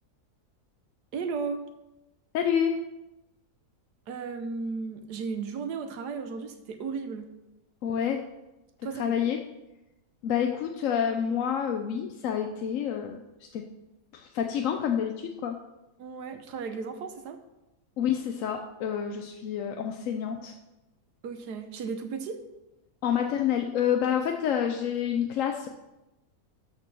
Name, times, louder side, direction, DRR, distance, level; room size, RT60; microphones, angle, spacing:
voice 1, 1.1-1.6 4.1-7.3 8.8-9.1 16.0-17.4 21.2-22.4, right 5 dB, 90° right, 8 dB, 1.5 m, -35 dB
voice 2, 2.3-2.8 7.8-8.3 9.0-9.4 10.2-13.6 14.1-15.6 18.0-20.5 23.0-25.7, left 8 dB, 65° left, 4 dB, 0.9 m, -28 dB
12.5 x 4.5 x 6.0 m, 0.98 s
omnidirectional pair, 1.7 m